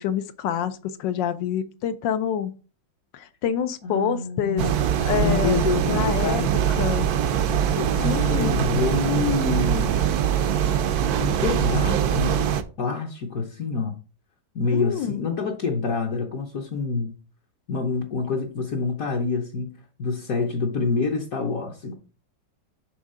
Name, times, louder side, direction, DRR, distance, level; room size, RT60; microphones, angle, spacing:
voice 1, 0.0-2.6 3.1-4.6 5.0-5.6 5.9-6.4 6.7-7.1 8.0-8.6 14.6-15.2, left 9 dB, 75° left, 1.3 m, -27 dB
voice 2, 3.8-4.8 5.2-6.5 7.5-10.1 11.2-14.0 14.5-17.1 17.7-22.0, left 4 dB, 55° left, 1.2 m, -27 dB
sound 1, 4.6-12.6, right 9 dB, 70° right, 1.0 m, -23 dB
6.3 x 3.5 x 5.4 m
omnidirectional pair, 2.1 m